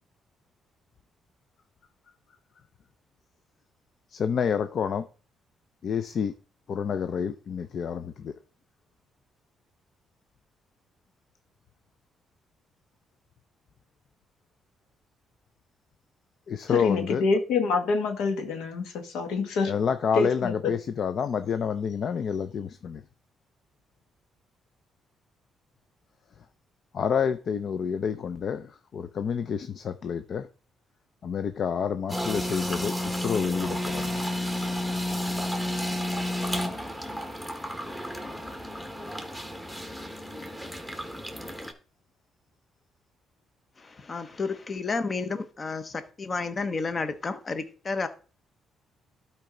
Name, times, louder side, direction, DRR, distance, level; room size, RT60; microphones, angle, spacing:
voice 1, 4.1-5.1 5.8-6.3 6.7-8.3 16.5-17.2 19.7-23.0 26.9-30.5 31.2-34.2, left 7 dB, 55° left, 0.5 m, -29 dB
voice 2, 16.7-19.7 20.2-20.7, left 4 dB, 85° left, 1.2 m, -26 dB
sound 1, 32.1-41.7, left 1 dB, 5° left, 1.4 m, -32 dB
voice 3, 43.8-48.1, left 4 dB, 35° left, 0.9 m, -31 dB
12.0 x 4.5 x 3.8 m
cardioid pair, 90°, 0 cm